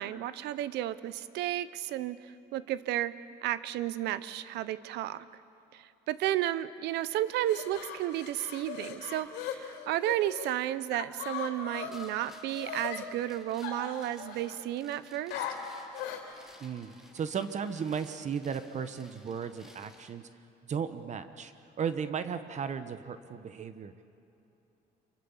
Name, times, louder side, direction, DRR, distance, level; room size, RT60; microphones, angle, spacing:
voice 1, 0.0-3.2 3.4-5.3 5.7-15.4, right 13 dB, 85° right, 16 dB, 0.9 m, -33 dB
sound 1, 7.3-10.5 10.9-13.0 13.6-14.6 15.3-16.3, left 8 dB, 90° left, 3.3 m, -39 dB
sound 2, 11.9-20.1, left 1 dB, 5° right, 3.0 m, -57 dB
voice 2, 16.6-20.2 20.7-21.5 21.8-23.9, right 7 dB, 45° right, 11 dB, 1.2 m, -35 dB
26.0 x 23.5 x 7.3 m, 2.9 s
cardioid pair, 110°, 17 cm